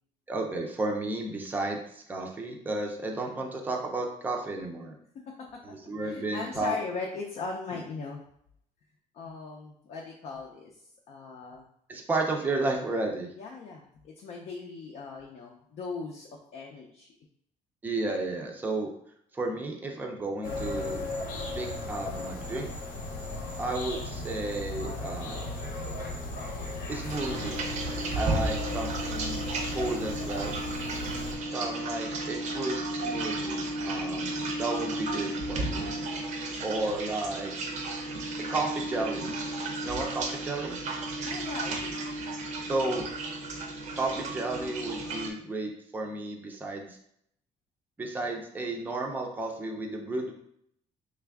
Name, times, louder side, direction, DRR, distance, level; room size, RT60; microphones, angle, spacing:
voice 1, 0.3-5.0 5.6-6.8 11.9-13.3 17.8-18.9 19.3-21.0 21.5-22.7 23.6-25.4 26.9-27.6 28.2-29.4 29.7-30.6 31.5-34.3 34.6-35.9 36.6-37.5 38.5-39.3 39.8-40.7 42.7-43.1 44.0-47.0 48.0-50.3, right 2 dB, 10° right, 1 dB, 0.5 m, -32 dB
voice 2, 5.3-5.6 6.0-8.2 9.1-10.8 11.1-11.7 13.4-17.1 41.2-42.0, left 4 dB, 50° left, -1 dB, 0.5 m, -39 dB
sound 1, 20.4-31.3, left 2 dB, 80° left, 0.9 m, -36 dB
sound 2, 27.1-45.3, right 2 dB, 55° right, 0.6 m, -33 dB
3.3 x 2.4 x 3.4 m, 0.69 s
cardioid pair, 145°, 15 cm